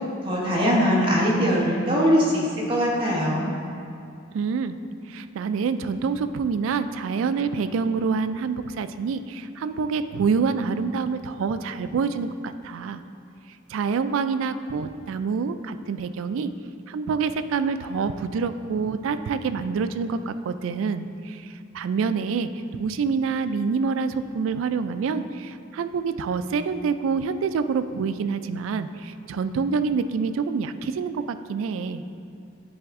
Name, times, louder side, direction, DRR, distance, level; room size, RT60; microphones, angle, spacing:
voice 1, 0.2-3.5, equal, 25° right, -4 dB, 1.1 m, -21 dB
voice 2, 4.3-4.8 5.1-13.0 13.7-16.5 16.9-32.0, right 5 dB, 80° right, 11 dB, 0.3 m, -27 dB
9.7 x 3.5 x 3.6 m, 2.6 s
head